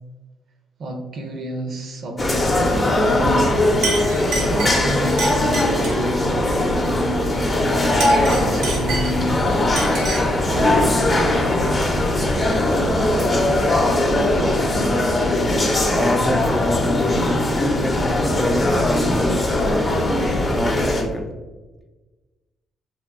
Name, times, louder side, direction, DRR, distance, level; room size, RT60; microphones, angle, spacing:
voice 1, 0.8-3.9 4.3-7.5 8.2-9.7 10.5-12.0, right 1 dB, 60° right, 3 dB, 0.6 m, -30 dB
sound 1, 2.2-21.0, left 1 dB, 30° left, 0.7 m, -20 dB
Chink clink, 3.3-3.5 3.8-6.1 7.8-9.4 9.8-10.4, right 3 dB, 85° right, 0.9 m, -28 dB
sound 2, 7.7-14.0, left 1 dB, 65° left, 0.7 m, -33 dB
voice 2, 15.9-19.4 20.5-21.3, left 1 dB, 5° left, 4 dB, 0.3 m, -26 dB
3.4 x 2.2 x 3.6 m, 1.2 s
cardioid pair, 90°, 0 cm